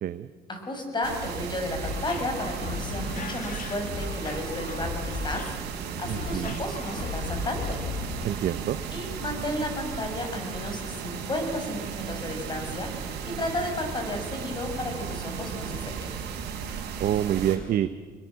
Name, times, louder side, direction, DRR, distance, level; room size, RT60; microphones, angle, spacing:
voice 1, 0.5-5.5 6.0-7.8 8.9-16.1, left 1 dB, 25° left, 4 dB, 6.3 m, -33 dB
sound 1, 1.0-17.6, right 6 dB, 85° right, 4.3 m, -35 dB
sound 2, 1.8-8.3, left 5 dB, 50° left, 2.0 m, -36 dB
voice 2, 6.1-6.6 8.2-8.8 17.0-17.9, right 11 dB, 60° right, 11 dB, 0.9 m, -27 dB
26.0 x 21.0 x 7.5 m, 1.5 s
cardioid pair, 110°, 17 cm